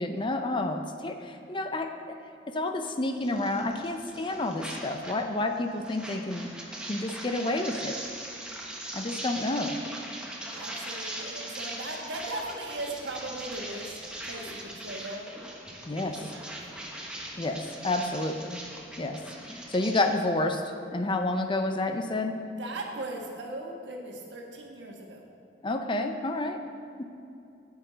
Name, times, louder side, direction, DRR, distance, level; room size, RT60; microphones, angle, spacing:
voice 1, 0.0-2.2 2.5-6.5 6.9-8.0 8.9-9.8 15.9-16.2 17.4-18.6 19.0-19.2 19.7-20.6 20.9-22.4 25.6-26.6 27.0-27.1, left 2 dB, 25° left, 6 dB, 0.5 m, -29 dB
sound 1, 3.2-5.2 5.5-20.0, right 1 dB, 5° right, 1.1 m, -40 dB
voice 2, 10.5-14.0 14.2-15.3 16.0-16.5 22.3-25.3, right 2 dB, 75° right, 1 dB, 1.4 m, -38 dB
10.5 x 8.9 x 3.9 m, 2.7 s
head